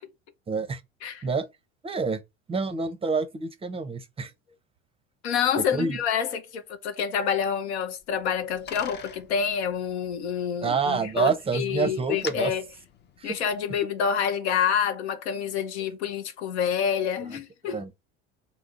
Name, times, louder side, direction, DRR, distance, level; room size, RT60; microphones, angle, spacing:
voice 1, 0.5-0.8 1.2-1.5 1.8-2.2 2.5-4.3 5.7-6.0 10.6-12.5 13.2-13.3 17.7-18.1, right 4 dB, 20° right, 0.5 m, -27 dB
voice 2, 5.2-12.6 13.2-17.8, left 7 dB, 90° left, 0.7 m, -27 dB
Bicycle, 8.0-13.7, left 7 dB, 35° left, 0.5 m, -44 dB
3.7 x 2.0 x 3.6 m
supercardioid pair, 95°, 32 cm